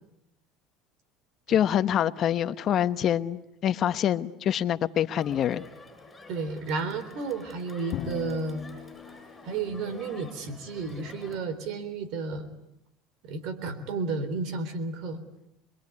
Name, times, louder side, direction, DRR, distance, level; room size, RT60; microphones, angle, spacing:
voice 1, 1.5-5.7, left 10 dB, 45° left, 12 dB, 1.1 m, -25 dB
Crowd, 5.2-11.4, left 2 dB, 10° left, 7.6 m, -48 dB
voice 2, 6.3-8.8 9.4-12.5 13.2-15.2, right 4 dB, 60° right, 11 dB, 3.6 m, -32 dB
Drum, 7.9-9.9, left 11 dB, 60° left, 1.9 m, -38 dB
26.5 x 22.5 x 9.7 m, 0.85 s
cardioid pair, 130°, 0 cm